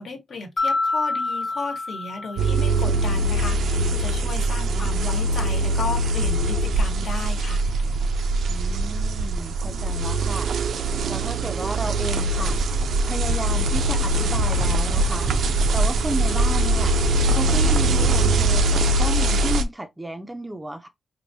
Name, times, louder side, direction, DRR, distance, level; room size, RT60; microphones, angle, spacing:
voice 1, 0.0-7.6, left 3 dB, 65° left, 1.2 m, -34 dB
Mallet percussion, 0.6-2.9, left 3 dB, 35° left, 0.7 m, -27 dB
voiture en foret, 2.4-19.6, right 1 dB, 85° right, 0.5 m, -22 dB
voice 2, 4.7-5.1 8.5-10.5 11.1-12.6 13.0-15.3 15.7-16.9 17.3-20.9, right 1 dB, 10° right, 0.4 m, -32 dB
4.6 x 2.5 x 2.7 m
wide cardioid pair, 140°, 0 cm